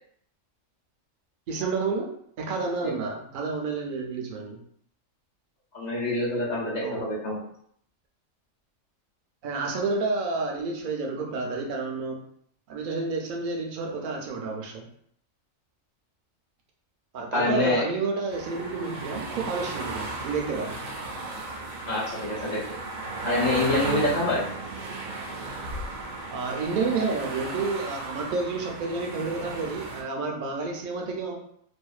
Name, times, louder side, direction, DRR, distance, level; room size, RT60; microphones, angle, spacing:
voice 1, 1.5-4.6 6.8-7.0 9.4-12.2 12.7-14.9 17.1-20.8 26.3-31.4, right 4 dB, 60° right, 1 dB, 0.5 m, -30 dB
voice 2, 5.7-7.4 17.3-17.8 21.9-22.8 23.2-24.4, left 2 dB, 65° left, -7 dB, 0.4 m, -26 dB
sound 1, 18.3-30.0, right 2 dB, 75° right, 1.0 m, -35 dB
2.6 x 2.1 x 2.3 m, 0.66 s
omnidirectional pair, 1.4 m